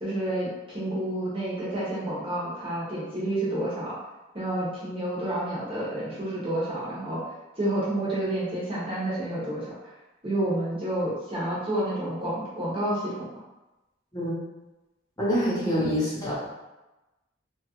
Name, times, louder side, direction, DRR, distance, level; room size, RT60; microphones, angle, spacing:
voice 1, 0.0-4.0 4.3-7.2 7.6-9.7 10.2-13.2, right 1 dB, 30° right, -7 dB, 0.9 m, -29 dB
voice 2, 15.2-16.3, equal, 20° left, -8 dB, 0.9 m, -25 dB
2.9 x 2.4 x 2.9 m, 1.0 s
head